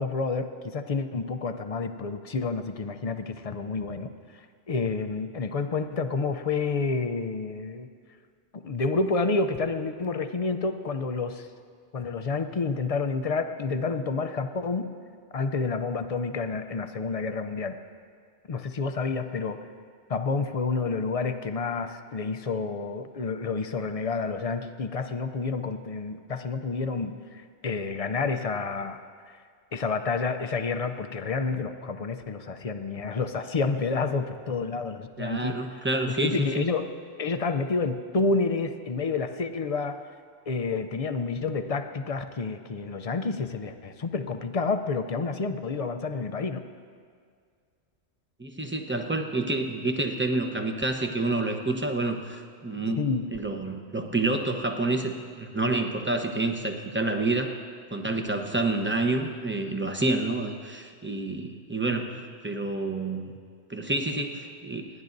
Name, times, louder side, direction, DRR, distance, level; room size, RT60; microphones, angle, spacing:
voice 1, 0.0-4.1 4.7-7.9 8.5-11.5 11.9-14.9 15.3-17.7 18.5-19.7 20.1-29.0 29.3-29.4 29.7-35.6 36.1-36.9 37.2-40.0 40.5-46.6 53.0-53.3, left 4 dB, 45° left, 8 dB, 0.5 m, -29 dB
voice 2, 35.2-36.6 48.4-53.0 53.3-57.5 57.9-63.3 63.7-64.9, right 2 dB, 10° right, 4 dB, 0.8 m, -28 dB
29.5 x 10.5 x 2.6 m, 2.1 s
omnidirectional pair, 1.1 m